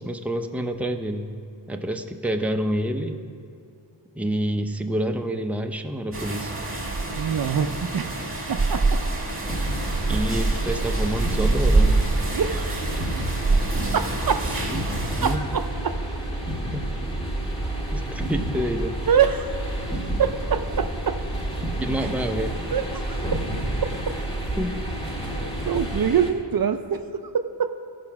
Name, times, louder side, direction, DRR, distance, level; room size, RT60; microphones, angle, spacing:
voice 1, 0.0-1.3 1.7-3.2 4.2-6.5 10.1-12.2 14.7-15.4 16.7-16.9 17.9-19.0 21.8-22.6 24.6-24.8, right 1 dB, 5° right, 5 dB, 0.6 m, -28 dB
sound 1, 6.1-15.4, right 3 dB, 30° right, 1.6 m, -25 dB
voice 2, 7.1-8.2 8.5-9.0 12.3-13.0 13.9-14.5 15.2-15.9 19.1-19.5 20.2-21.2 22.0-22.1 22.7-23.4 23.8-24.1 25.3-27.8, right 7 dB, 55° right, 8 dB, 0.5 m, -25 dB
sound 2, 9.4-26.3, right 1 dB, 10° left, 1.7 m, -29 dB
15.0 x 5.0 x 5.9 m, 2.5 s
wide cardioid pair, 60°, 44 cm